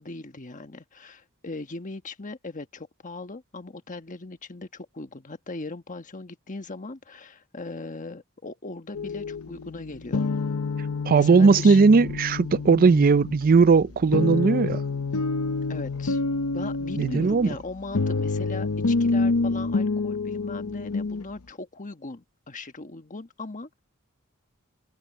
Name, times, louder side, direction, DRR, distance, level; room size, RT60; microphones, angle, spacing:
voice 1, 0.0-10.2 11.1-11.8 15.7-16.2 16.5-23.8, left 3 dB, 35° left, 1.3 m, -39 dB
sound 1, 8.9-21.2, left 3 dB, 80° left, 0.8 m, -28 dB
voice 2, 11.1-14.8 17.0-17.5, right 4 dB, 40° right, 0.4 m, -18 dB
head